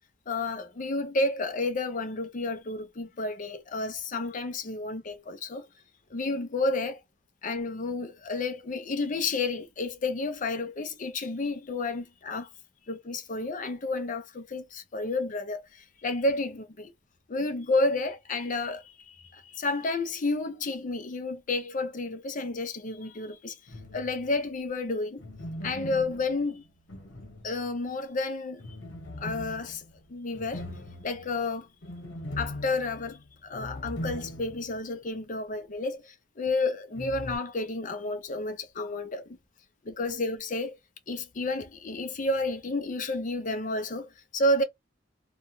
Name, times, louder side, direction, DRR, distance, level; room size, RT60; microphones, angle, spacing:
voice 1, 0.3-5.7 6.1-7.0 7.4-12.5 12.9-16.9 17.3-23.6 23.9-25.2 25.6-26.6 27.4-28.8 29.2-29.8 30.1-30.7 31.0-31.7 32.4-39.4 39.8-40.8 41.1-44.6, left 2 dB, 45° left, 0.6 m, -31 dB
sound 1, 23.7-24.4 25.2-27.9 28.6-34.8 35.1-35.2 37.0-37.4, left 1 dB, 75° left, 1.1 m, -40 dB
3.0 x 2.2 x 2.7 m
head